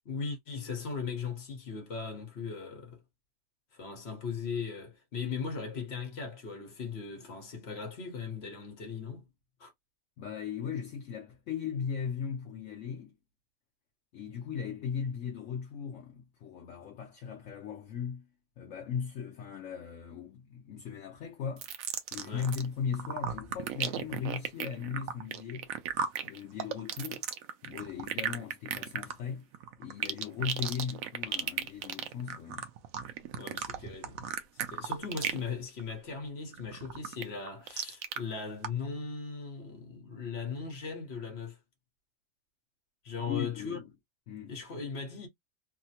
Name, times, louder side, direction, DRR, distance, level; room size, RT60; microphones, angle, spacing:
voice 1, 0.0-3.0 3.7-9.3 9.6-9.7 22.2-22.5 33.3-34.2 34.7-41.6 43.0-43.8 44.5-45.3, left 5 dB, 55° left, 1.3 m, -38 dB
voice 2, 10.2-13.1 14.1-18.2 18.6-21.7 22.1-25.7 26.2-27.3 27.6-29.5 29.8-32.7 43.2-43.9 44.3-44.6, left 7 dB, 70° left, 1.0 m, -37 dB
sound 1, 21.6-22.7 22.9-35.5 35.8-36.1 36.5-38.2 38.6-38.7, right 9 dB, 90° right, 1.0 m, -35 dB
3.2 x 2.0 x 2.8 m
omnidirectional pair, 1.4 m